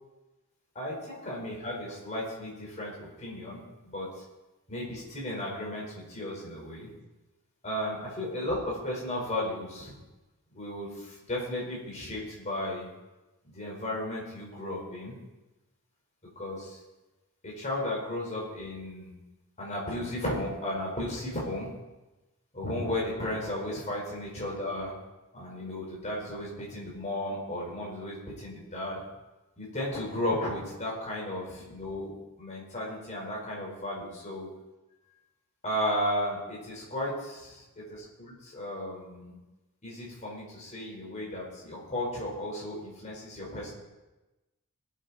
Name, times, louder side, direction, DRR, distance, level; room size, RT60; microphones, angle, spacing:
voice 1, 0.7-4.2 4.7-6.9 7.6-9.9 10.5-12.9 13.5-15.2 16.3-16.8 17.4-19.1 19.6-21.7 22.5-24.9 25.3-29.0 29.6-32.1 32.4-34.5 35.6-37.6 38.2-39.4 39.8-43.7, left 1 dB, 30° left, -4 dB, 4.9 m, -34 dB
20.5 x 8.5 x 4.4 m, 1.1 s
head